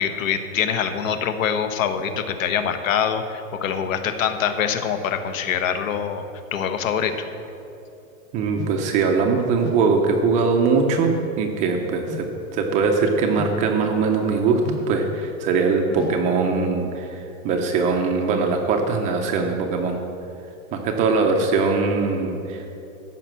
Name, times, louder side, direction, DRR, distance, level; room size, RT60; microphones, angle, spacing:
voice 1, 0.0-6.2 6.5-7.3, left 7 dB, 70° left, 9 dB, 1.1 m, -24 dB
voice 2, 8.3-20.0 20.7-22.7, right 4 dB, 20° right, 3 dB, 0.5 m, -21 dB
sound 1, 8.5-8.8 9.6-9.9 10.7-11.0 12.0-12.4 13.3-13.6 14.6-14.9 15.9-16.3, left 6 dB, 85° left, 2.7 m, -35 dB
14.0 x 5.7 x 7.5 m, 2.8 s
supercardioid pair, 160°, 41 cm